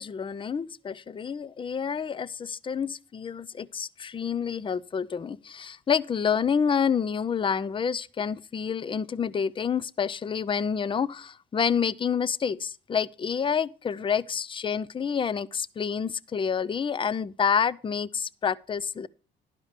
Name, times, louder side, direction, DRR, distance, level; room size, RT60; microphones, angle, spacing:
voice 1, 0.0-19.1, left 7 dB, 25° left, 0.4 m, -28 dB
11.5 x 5.0 x 6.4 m
cardioid pair, 90°, 20 cm